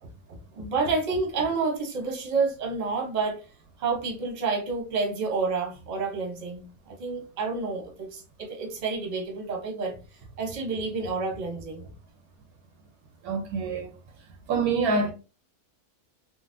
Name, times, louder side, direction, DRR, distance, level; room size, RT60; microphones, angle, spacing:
voice 1, 0.0-3.5 3.8-11.9, right 4 dB, 35° right, 0.8 m, -29 dB
voice 2, 13.2-13.9 14.5-15.1, right 4 dB, 75° right, 1.1 m, -26 dB
3.8 x 2.1 x 2.5 m
omnidirectional pair, 1.6 m